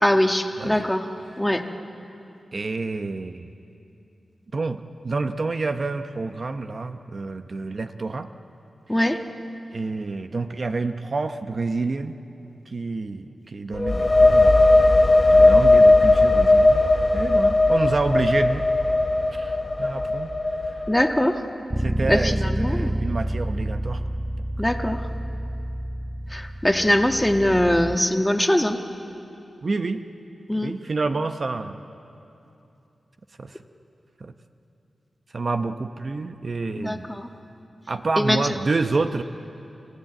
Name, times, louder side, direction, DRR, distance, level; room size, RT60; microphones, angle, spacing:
voice 1, 0.0-1.1 1.4-1.6 8.9-9.2 20.9-21.4 22.1-23.0 24.6-25.0 26.3-28.8 30.5-30.7 36.8-37.3 38.2-38.4, left 1 dB, 10° left, 4 dB, 1.5 m, -22 dB
voice 2, 0.6-0.9 2.5-3.5 4.5-8.3 9.7-12.1 12.7-14.7 15.3-16.8 17.1-18.6 19.3-20.3 21.8-24.0 29.6-30.0 30.6-31.8 33.4-33.6 34.2-34.3 35.3-37.1 37.9-39.2, right 3 dB, 50° right, 8 dB, 0.8 m, -28 dB
sound 1, 13.7-21.3, left 2 dB, 30° left, 0.8 m, -17 dB
Bass guitar, 21.7-28.0, right 1 dB, 15° right, 0.6 m, -28 dB
29.5 x 15.0 x 8.9 m, 2.8 s
wide cardioid pair, 80°, 0 cm